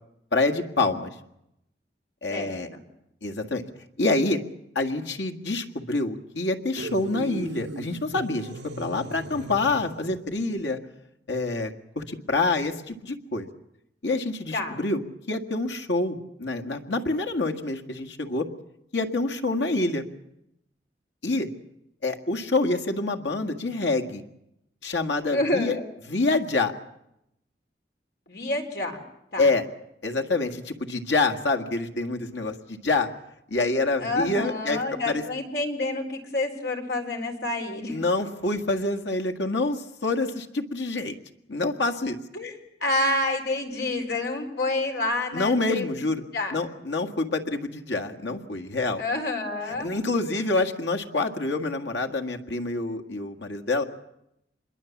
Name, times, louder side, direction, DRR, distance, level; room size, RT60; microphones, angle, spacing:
voice 1, 0.3-1.1 2.2-2.7 3.2-3.6 4.0-4.4 4.8-10.8 11.3-13.5 14.0-15.0 15.3-18.5 18.9-20.0 21.2-21.5 22.0-24.2 24.8-25.7 26.1-26.7 29.4-29.6 30.0-33.1 33.5-35.2 37.9-41.2 41.5-42.2 45.3-46.2 46.5-49.0 49.7-53.8, left 2 dB, 85° left, 5 dB, 1.8 m, -27 dB
voice 2, 2.3-2.8 14.5-14.7 25.3-25.8 28.3-29.0 29.3-29.5 34.0-38.0 42.3-42.6 42.8-45.9 46.3-46.6 49.0-49.9, left 2 dB, 65° left, 3 dB, 3.9 m, -28 dB
sound 1, 6.8-10.3, right 2 dB, 80° right, 1.0 m, -38 dB
25.5 x 22.0 x 7.3 m, 0.82 s
head